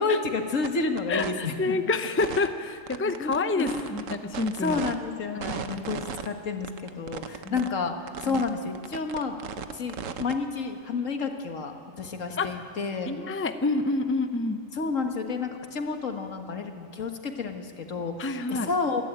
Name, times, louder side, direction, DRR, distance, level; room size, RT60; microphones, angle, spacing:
voice 1, 0.0-1.8 3.0-4.0 4.6-6.0 6.3-9.4 9.7-13.1 14.7-19.0, left 4 dB, 75° left, 5 dB, 1.8 m, -30 dB
sound 1, 0.6-0.7 1.0-1.3 2.2-2.5 2.9-4.9 5.4-6.3 6.6-7.7 8.1-8.5 8.7-10.3, right 8 dB, 80° right, 1.3 m, -35 dB
voice 2, 1.1-4.8 5.4-5.8 7.4-7.6 8.3-8.4 12.4-12.5 13.1-14.6 18.2-18.7, left 3 dB, 15° left, 8 dB, 0.6 m, -28 dB
28.0 x 11.5 x 8.9 m, 2.2 s
omnidirectional pair, 1.3 m